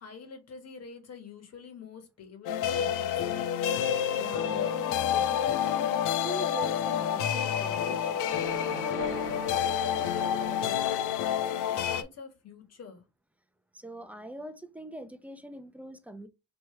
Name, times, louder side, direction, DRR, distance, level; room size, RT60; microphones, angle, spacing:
voice 1, 0.0-3.4 9.5-13.0, left 5 dB, 55° left, 1.6 m, -47 dB
sound 1, 2.5-12.0, left 9 dB, 90° left, 0.5 m, -28 dB
voice 2, 3.9-8.3 13.7-16.3, right 1 dB, 5° right, 0.6 m, -43 dB
sound 2, 8.3-11.1, right 5 dB, 45° right, 0.9 m, -41 dB
3.3 x 3.0 x 4.4 m
cardioid pair, 90°, 30 cm